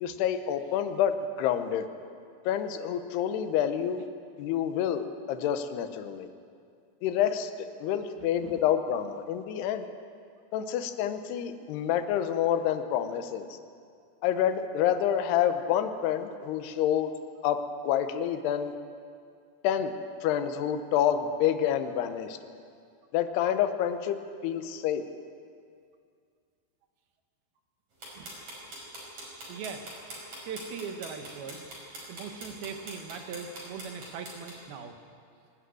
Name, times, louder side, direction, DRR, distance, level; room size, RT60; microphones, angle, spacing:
voice 1, 0.0-1.9 2.5-4.1 4.4-6.3 7.0-7.5 7.8-9.9 10.5-13.5 14.2-17.1 17.4-18.7 19.6-19.9 20.2-22.4 23.1-24.2 24.4-25.0, left 9 dB, 75° left, 8 dB, 2.6 m, -28 dB
voice 2, 8.2-8.6 28.2-28.3 29.5-29.8 30.4-31.6 32.1-35.0, right 6 dB, 70° right, 6 dB, 2.6 m, -40 dB
sound 1, 28.0-34.5, right 1 dB, 40° right, 6.9 m, -42 dB
22.0 x 12.5 x 9.5 m, 2.3 s
omnidirectional pair, 5.6 m